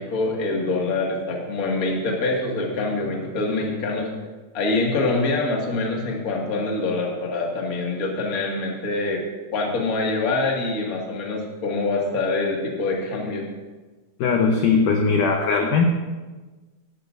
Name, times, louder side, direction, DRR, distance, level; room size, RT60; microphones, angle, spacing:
voice 1, 0.0-4.1 4.5-9.2 9.5-13.5, left 3 dB, 40° left, -1 dB, 1.2 m, -25 dB
voice 2, 14.2-15.8, left 5 dB, 75° left, 2 dB, 1.9 m, -19 dB
17.5 x 13.0 x 2.6 m, 1.3 s
omnidirectional pair, 5.0 m